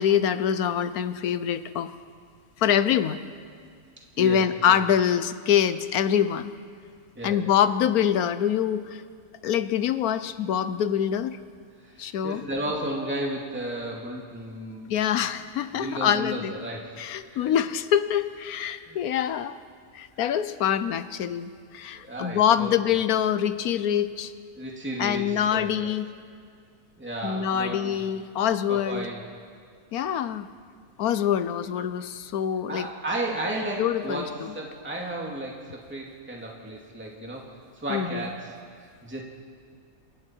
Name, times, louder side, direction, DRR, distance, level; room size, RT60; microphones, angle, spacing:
voice 1, 0.0-1.9 2.6-3.2 4.2-6.5 7.2-9.0 9.4-11.4 12.0-12.4 14.9-16.5 17.0-19.6 19.9-24.3 25.0-26.1 27.2-29.1 29.9-30.5 31.0-32.9 33.8-34.5 37.9-38.3, left 9 dB, 85° left, 12 dB, 1.2 m, -25 dB
voice 2, 11.8-15.3 15.7-17.5 18.7-19.0 21.9-22.7 24.6-25.8 27.0-28.0 28.7-29.2 32.7-34.3 34.5-37.5 37.7-39.2, right 1 dB, 10° right, -2 dB, 2.4 m, -34 dB
28.5 x 23.0 x 4.6 m, 2.1 s
omnidirectional pair, 1.5 m